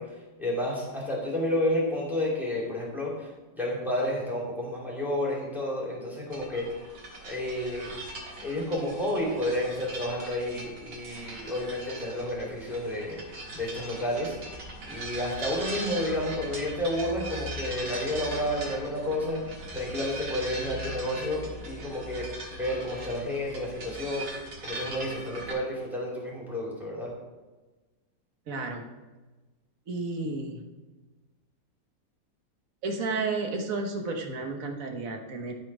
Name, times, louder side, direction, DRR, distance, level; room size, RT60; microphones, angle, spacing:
voice 1, 0.0-3.3 3.6-6.7 7.2-7.9 8.4-19.4 19.7-22.3 22.6-27.1, left 1 dB, ahead, -5 dB, 2.8 m, -31 dB
sound 1, 6.3-25.5, right 1 dB, 70° right, 2.3 m, -40 dB
voice 2, 28.5-28.8 29.9-30.6 32.8-35.5, right 3 dB, 55° right, 3 dB, 1.4 m, -32 dB
13.0 x 4.5 x 4.9 m, 1.2 s
omnidirectional pair, 1.9 m